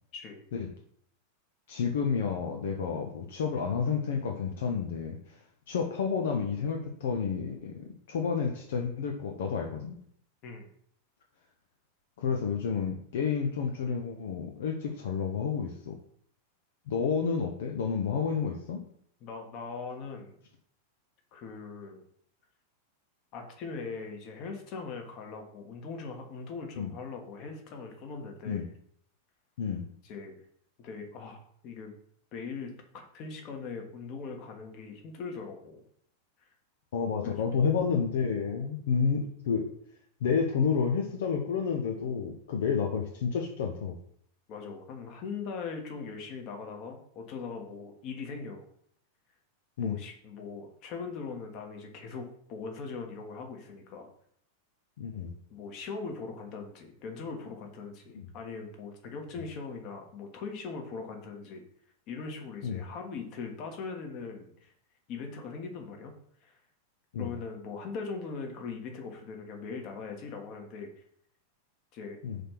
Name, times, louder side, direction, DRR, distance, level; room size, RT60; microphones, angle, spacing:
voice 1, 0.1-0.4 10.4-10.7 19.2-20.4 21.3-22.0 23.3-28.7 30.0-30.4 30.8-31.9 32.3-35.8 37.2-37.5 38.4-38.7 44.5-48.6 49.8-54.1 55.5-61.6 62.1-64.7 65.1-66.1 66.4-66.6 67.2-70.9 71.9-72.2, left 4 dB, 40° left, 3 dB, 1.4 m, -40 dB
voice 2, 1.7-5.4 5.7-10.0 12.2-16.0 16.9-18.8 26.8-26.9 28.4-28.6 29.6-29.9 36.9-39.7 40.2-44.0 49.8-50.0 55.0-55.3 58.1-58.2 62.6-62.8 67.1-67.3 72.2-72.4, left 6 dB, 60° left, 4 dB, 0.7 m, -30 dB
5.0 x 4.4 x 5.9 m, 0.65 s
figure-of-eight pair, 90°, 0 cm